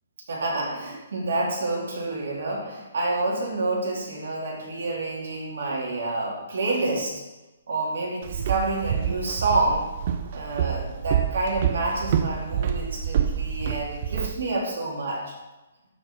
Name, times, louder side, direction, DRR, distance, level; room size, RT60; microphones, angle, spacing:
voice 1, 0.3-7.1 7.7-9.8 10.3-15.4, right 2 dB, 70° right, -2 dB, 2.5 m, -28 dB
Walk footsteps, 8.2-14.3, right 9 dB, 45° right, 0.5 m, -27 dB
12.0 x 4.6 x 3.6 m, 1.1 s
hypercardioid pair, 155°, 0 cm